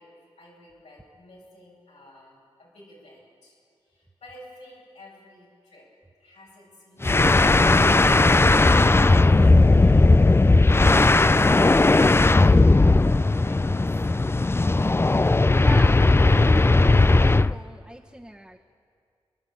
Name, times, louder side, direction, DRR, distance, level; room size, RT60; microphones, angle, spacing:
voice 1, 0.0-3.6 3.8-5.9 6.2-7.9 8.8-10.0 13.3-14.0, left 1 dB, 90° left, -5 dB, 7.5 m, -51 dB
sound 1, 7.0-17.6, left 2 dB, 20° left, 0.4 m, -17 dB
voice 2, 15.5-18.6, right 1 dB, 5° right, -1 dB, 1.3 m, -41 dB
29.0 x 11.5 x 8.7 m, 2.2 s
cardioid pair, 45°, 11 cm